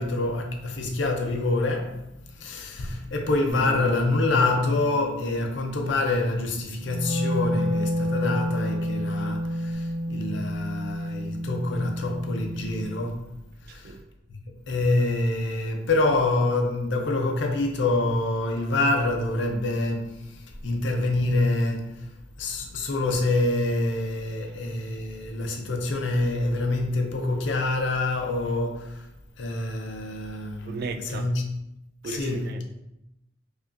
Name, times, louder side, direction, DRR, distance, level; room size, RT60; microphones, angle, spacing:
voice 1, 0.0-2.0 2.3-13.3 13.6-14.0 14.3-22.1 22.4-29.1 29.4-31.5 32.0-32.5, left 2 dB, 70° left, 0.5 m, -26 dB
Bass guitar, 3.5-9.7, right 4 dB, 55° left, 1.2 m, -42 dB
Wind instrument woodwind instrument, 6.8-13.0, equal, 75° right, 0.7 m, -29 dB
voice 2, 13.7-14.0 30.7-31.3 32.0-32.7, right 4 dB, 55° right, 0.3 m, -35 dB
4.9 x 2.3 x 2.5 m
head